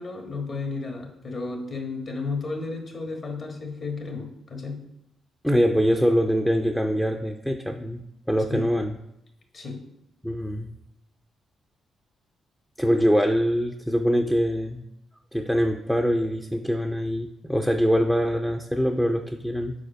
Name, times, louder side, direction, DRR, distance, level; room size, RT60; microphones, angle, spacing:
voice 1, 0.0-4.8 8.5-8.7 9.5-9.8, left 3 dB, 55° left, 2 dB, 1.4 m, -33 dB
voice 2, 5.4-9.0 10.2-10.7 12.8-14.9 15.3-19.7, equal, ahead, 4 dB, 0.4 m, -23 dB
5.0 x 4.3 x 5.3 m, 0.81 s
cardioid pair, 80°, 0 cm